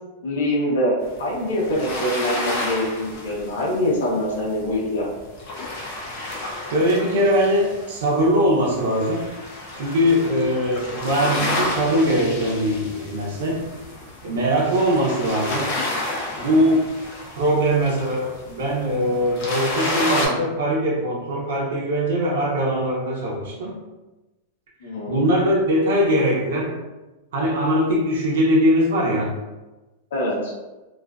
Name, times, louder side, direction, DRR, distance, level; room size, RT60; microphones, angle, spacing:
voice 1, 0.2-0.9 1.2-5.1 24.8-25.2 30.1-30.5, left 1 dB, 90° left, -3 dB, 0.7 m, -24 dB
sound 1, 1.2-8.3 8.7-20.3, left 2 dB, 45° left, 0.5 m, -31 dB
voice 2, 6.6-9.2 9.7-13.7 14.2-15.7 16.4-16.9 17.3-23.8 25.1-26.8 27.3-29.3, equal, 80° right, -4 dB, 0.7 m, -21 dB
2.4 x 2.2 x 2.3 m, 1.1 s
supercardioid pair, 170°, 0 cm